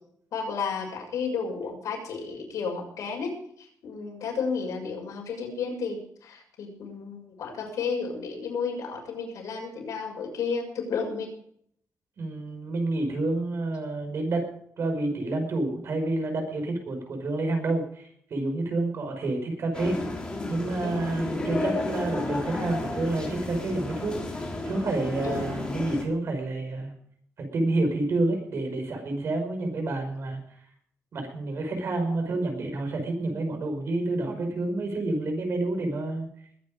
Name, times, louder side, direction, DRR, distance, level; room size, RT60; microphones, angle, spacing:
voice 1, 0.3-11.3 20.8-21.1 25.2-25.4, left 5 dB, 75° left, 1 dB, 6.7 m, -32 dB
voice 2, 12.2-14.5 14.8-20.0 20.5-24.2 24.7-26.9 27.5-30.4 31.1-36.3, right 2 dB, 50° right, 5 dB, 5.4 m, -29 dB
sound 1, 19.7-26.0, left 2 dB, 15° left, 4.2 m, -32 dB
21.5 x 9.8 x 5.1 m, 0.66 s
cardioid pair, 140°, 6 cm